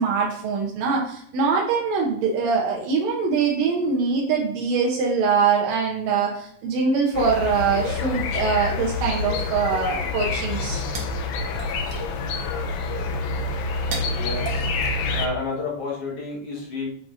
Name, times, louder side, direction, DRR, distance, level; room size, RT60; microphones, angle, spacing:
voice 1, 0.0-10.8 11.4-11.5, right 5 dB, 70° right, -2 dB, 1.7 m, -23 dB
sound 1, 7.1-15.3, left 3 dB, 80° left, 1.8 m, -27 dB
sound 2, 10.5-15.8, right 3 dB, 85° right, 1.1 m, -40 dB
voice 2, 14.0-14.7 15.1-16.9, left 3 dB, 55° left, -4 dB, 1.8 m, -30 dB
8.5 x 5.0 x 2.5 m, 0.64 s
omnidirectional pair, 4.1 m